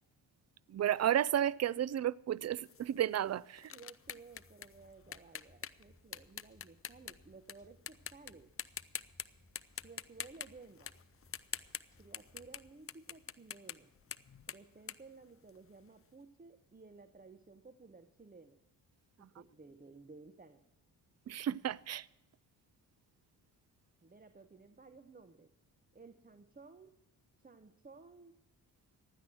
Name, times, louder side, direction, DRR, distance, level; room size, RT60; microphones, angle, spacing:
voice 1, 0.7-3.7 19.2-19.3 21.3-22.1, right 11 dB, 35° right, 0.4 m, -32 dB
sound 1, 2.7-7.5 7.9-8.3 8.6-9.3 9.6-15.9, left 8 dB, 30° left, 0.5 m, -45 dB
voice 2, 3.7-8.5 9.8-10.9 12.0-13.9 14.5-18.6 19.2-20.6 24.0-25.5 25.9-27.0 27.4-28.4, right 4 dB, 20° right, 0.9 m, -56 dB
sound 2, 4.0-12.7, left 1 dB, 5° left, 3.7 m, -66 dB
16.0 x 10.0 x 6.2 m
hypercardioid pair, 40°, 47 cm